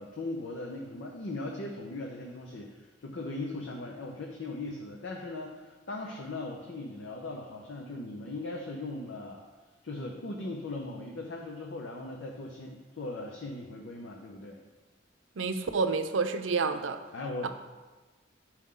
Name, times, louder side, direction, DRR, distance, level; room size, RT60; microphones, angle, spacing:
voice 1, 0.0-9.4 9.8-14.6 17.1-17.5, left 2 dB, 70° left, 0 dB, 0.7 m, -39 dB
voice 2, 15.4-17.0 17.4-17.5, right 4 dB, 80° right, 8 dB, 0.5 m, -29 dB
9.4 x 4.5 x 3.7 m, 1.3 s
head